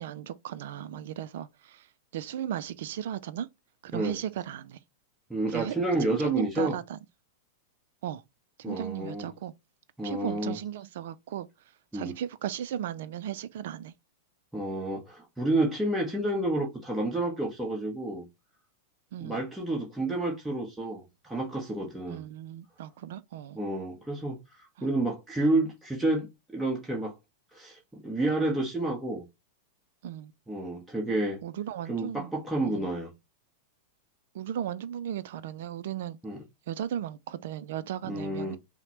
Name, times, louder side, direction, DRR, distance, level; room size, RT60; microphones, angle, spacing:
voice 1, 0.0-3.5 3.8-4.8 5.5-5.8 6.1-7.0 8.0-8.2 8.6-9.5 10.0-11.5 11.9-13.9 19.1-19.4 22.1-23.6 24.8-24.9 30.0-30.3 31.4-32.3 32.6-32.9 34.3-36.2 36.7-38.6, right 10 dB, 60° right, 0.3 m, -36 dB
voice 2, 5.3-6.7 8.6-9.3 10.0-10.6 11.9-12.1 14.5-18.2 19.2-22.2 23.5-27.1 27.5-29.2 30.5-31.4 31.9-33.1 36.2-36.4 38.0-38.6, right 2 dB, 5° right, 1.1 m, -30 dB
5.6 x 2.1 x 2.9 m
figure-of-eight pair, 95°, 0 cm